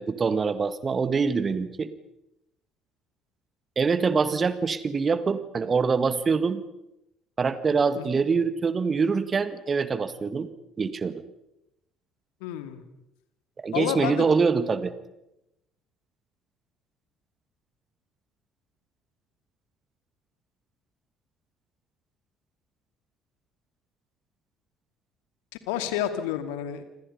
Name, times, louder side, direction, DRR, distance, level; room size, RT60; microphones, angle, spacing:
voice 1, 0.0-1.9 3.8-6.6 7.4-10.5 10.8-11.2 13.6-14.9, right 5 dB, 30° right, 13 dB, 1.8 m, -24 dB
voice 2, 12.4-12.8 13.7-14.3 25.7-26.8, left 10 dB, 65° left, 9 dB, 2.4 m, -30 dB
28.0 x 26.5 x 5.6 m, 0.89 s
figure-of-eight pair, 55°, 0 cm